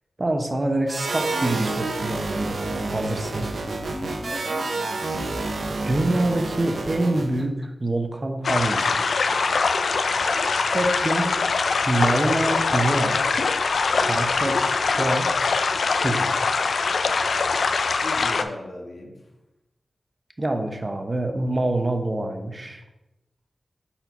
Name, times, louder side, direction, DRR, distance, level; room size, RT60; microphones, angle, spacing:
voice 1, 0.2-3.5 5.8-9.3 10.7-11.3 11.9-13.2 14.0-14.7 15.0-15.3 15.9-16.3 20.4-22.8, right 2 dB, 35° right, 4 dB, 0.9 m, -25 dB
sound 1, 0.9-7.4, right 3 dB, 75° right, 0.6 m, -29 dB
Laughter, 3.2-7.7, left 2 dB, 40° left, 0.8 m, -42 dB
voice 2, 4.3-4.9 17.9-19.2, left 1 dB, 60° left, 0 dB, 1.4 m, -38 dB
sound 2, 8.4-18.4, left 4 dB, 85° left, 0.4 m, -23 dB
4.4 x 4.3 x 5.4 m, 0.95 s
cardioid pair, 55°, 0 cm